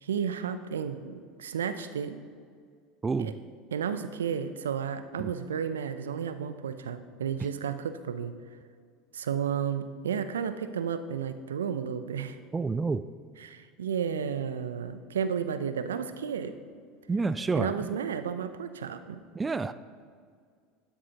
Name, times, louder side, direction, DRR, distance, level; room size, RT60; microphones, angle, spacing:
voice 1, 0.0-2.2 3.2-3.3 3.7-8.3 9.1-12.4 13.4-16.5 17.5-19.2, right 7 dB, 80° right, 11 dB, 0.5 m, -32 dB
voice 2, 3.0-3.4 5.2-5.3 12.5-13.0 17.1-17.8 19.3-19.7, right 4 dB, 20° right, 14 dB, 0.3 m, -28 dB
12.5 x 10.0 x 2.9 m, 2.1 s
hypercardioid pair, 80°, 0 cm